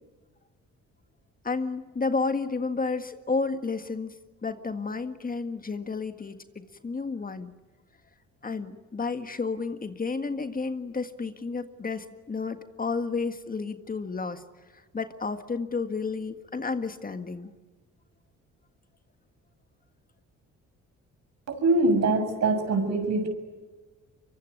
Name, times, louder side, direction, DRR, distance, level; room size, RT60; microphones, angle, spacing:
voice 1, 1.4-4.1 4.4-7.5 8.4-14.4 14.9-17.5, left 4 dB, 30° left, 9 dB, 1.7 m, -31 dB
voice 2, 21.5-23.3, right 2 dB, 60° right, 7 dB, 6.6 m, -23 dB
24.0 x 23.5 x 9.4 m, 1.3 s
cardioid pair, 90°, 30 cm